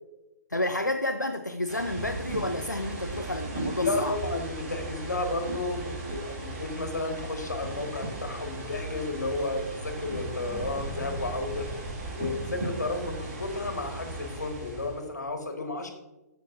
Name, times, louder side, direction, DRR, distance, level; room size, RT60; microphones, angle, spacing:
voice 1, 0.5-4.2, left 1 dB, 90° left, 6 dB, 0.6 m, -30 dB
sound 1, 1.7-15.1, right 1 dB, 45° right, 3.0 m, -37 dB
voice 2, 3.8-11.7 12.1-15.9, left 2 dB, 70° left, 5 dB, 1.9 m, -32 dB
sound 2, 10.4-12.6, right 4 dB, 20° right, 0.8 m, -41 dB
14.0 x 6.8 x 2.7 m, 0.99 s
figure-of-eight pair, 120°, 9 cm